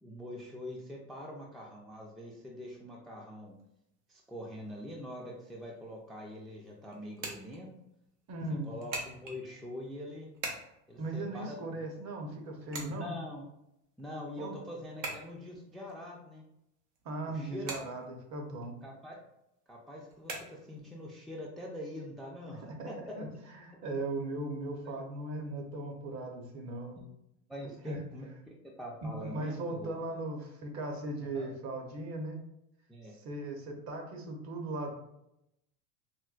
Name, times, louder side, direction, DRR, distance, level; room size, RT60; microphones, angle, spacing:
voice 1, 0.0-3.6 4.1-7.7 8.6-10.3 10.9-11.9 12.9-13.5 14.0-16.4 17.3-17.7 18.8-19.2 19.7-23.2 27.5-29.9 31.2-31.5 32.9-33.2, left 1 dB, ahead, -2 dB, 0.3 m, -44 dB
sound 1, 3.5-21.0, right 3 dB, 85° right, 0.9 m, -47 dB
voice 2, 8.3-8.7 11.0-13.2 14.4-14.6 17.0-18.8 22.5-23.3 23.5-27.0 27.9-28.0 29.0-32.4 33.1-34.9, right 2 dB, 45° right, 3 dB, 0.8 m, -38 dB
4.4 x 2.1 x 2.4 m, 0.83 s
supercardioid pair, 105°, 38 cm